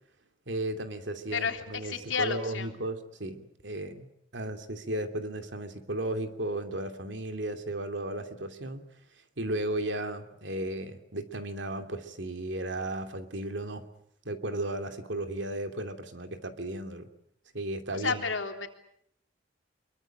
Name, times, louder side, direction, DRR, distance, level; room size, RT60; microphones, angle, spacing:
voice 1, 0.5-4.1 4.3-8.9 9.4-13.9 14.2-17.1 17.5-18.2, right 1 dB, 70° right, 8 dB, 2.8 m, -35 dB
voice 2, 1.3-2.7 17.9-18.7, left 5 dB, 80° left, 5 dB, 3.5 m, -31 dB
25.0 x 23.0 x 8.9 m, 0.72 s
head